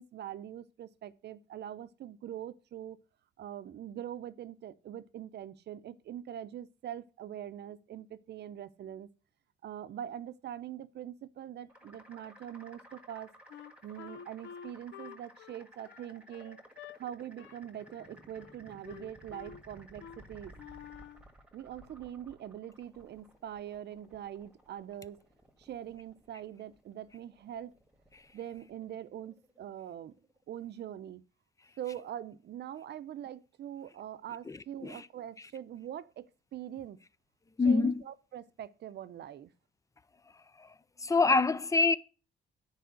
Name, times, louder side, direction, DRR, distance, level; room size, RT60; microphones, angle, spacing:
voice 1, 0.0-3.0 3.4-9.1 9.6-13.3 13.8-16.6 17.0-20.6 21.5-25.2 25.6-27.7 28.3-30.1 30.5-31.2 31.8-37.0 37.6-39.5, right 10 dB, 65° right, 0.7 m, -43 dB
sound 1, 11.7-30.4, equal, 5° right, 1.6 m, -57 dB
Wind instrument woodwind instrument, 13.5-17.0 17.4-17.6 17.9-18.6 18.8-19.6 20.0-20.2 20.5-21.3, left 8 dB, 90° left, 0.7 m, -49 dB
voice 2, 37.6-38.0 40.6-40.7 41.0-42.0, left 3 dB, 15° left, 0.4 m, -25 dB
9.5 x 4.8 x 7.6 m
cardioid pair, 145°, 19 cm